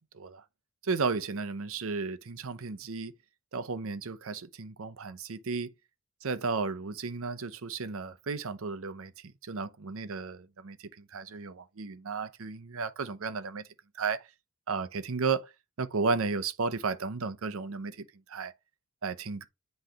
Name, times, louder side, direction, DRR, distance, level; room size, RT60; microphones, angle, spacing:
voice 1, 0.8-3.1 3.5-5.7 6.2-9.1 9.4-13.6 14.0-14.2 14.7-15.5 15.8-18.5 19.0-19.4, right 4 dB, 65° right, 0.7 m, -33 dB
8.0 x 3.2 x 5.1 m
head